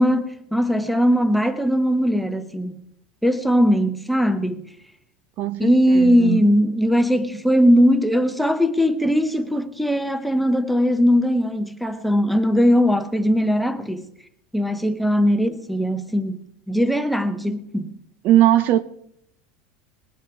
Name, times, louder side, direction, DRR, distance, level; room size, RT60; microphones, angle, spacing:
voice 1, 0.0-2.8 3.2-4.6 5.6-14.1 14.5-16.4 16.7-17.9, equal, ahead, 0.7 m, -19 dB
voice 2, 5.4-6.4 18.2-18.8, right 13 dB, 45° right, 0.4 m, -19 dB
20.0 x 8.4 x 4.7 m
supercardioid pair, 155°, 5 cm